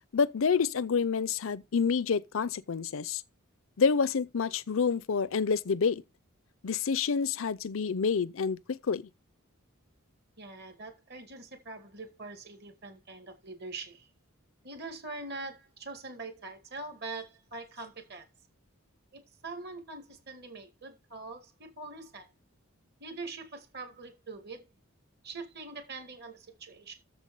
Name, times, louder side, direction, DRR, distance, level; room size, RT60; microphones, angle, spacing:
voice 1, 0.1-3.2 3.8-6.0 6.6-9.1, left 5 dB, 70° left, 0.5 m, -28 dB
voice 2, 10.4-14.1 14.6-18.2 19.1-22.3 23.0-24.6 25.2-27.0, right 3 dB, 50° right, 2.0 m, -43 dB
7.2 x 7.2 x 5.3 m
head